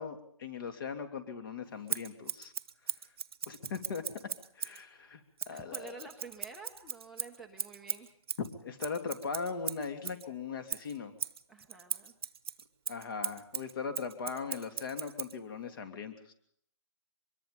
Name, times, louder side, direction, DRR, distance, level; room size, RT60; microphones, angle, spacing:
voice 1, 0.0-2.5 3.5-4.0 4.5-6.1 8.4-11.2 12.9-16.3, left 5 dB, 40° left, 7 dB, 3.0 m, -39 dB
Scissors, 1.9-4.8 5.4-10.3 10.7-15.4, right 8 dB, 45° right, 1.1 m, -39 dB
voice 2, 5.5-8.1 11.5-12.1, right 3 dB, ahead, 3 dB, 1.0 m, -49 dB
24.5 x 22.0 x 5.2 m, 0.67 s
hypercardioid pair, 160°, 17 cm